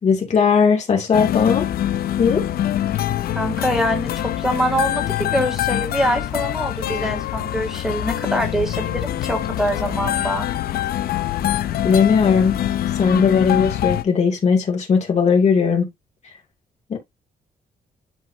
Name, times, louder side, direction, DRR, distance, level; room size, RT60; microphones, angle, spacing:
voice 1, 0.0-1.7 2.2-2.4 11.8-12.6 13.0-15.9 16.9-17.0, left 6 dB, 45° left, 2.5 m, -18 dB
sound 1, 1.1-14.0, left 12 dB, 75° left, 0.7 m, -24 dB
voice 2, 3.3-10.5, equal, 5° right, 2.8 m, -24 dB
11.5 x 3.9 x 2.8 m
cardioid pair, 115°, 16 cm